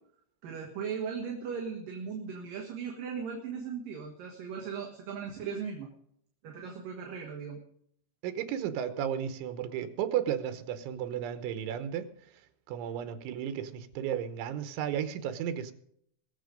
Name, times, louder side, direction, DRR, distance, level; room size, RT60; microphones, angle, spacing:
voice 1, 0.4-5.9 6.4-7.6, right 6 dB, 60° right, 0 dB, 2.9 m, -38 dB
voice 2, 8.2-12.1 12.7-15.7, right 9 dB, 90° right, 11 dB, 3.4 m, -33 dB
22.0 x 7.6 x 5.2 m, 0.69 s
omnidirectional pair, 5.2 m